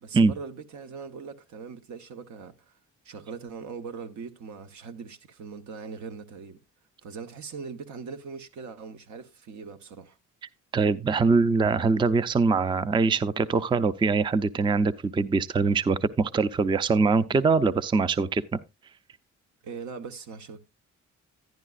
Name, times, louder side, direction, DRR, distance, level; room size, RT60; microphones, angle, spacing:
voice 1, 0.0-2.7 3.0-6.6 7.0-10.2 19.6-20.6, right 5 dB, 70° right, 1.1 m, -40 dB
voice 2, 10.7-18.4, right 4 dB, 15° right, 0.4 m, -23 dB
11.0 x 10.5 x 2.4 m
cardioid pair, 90°, 30 cm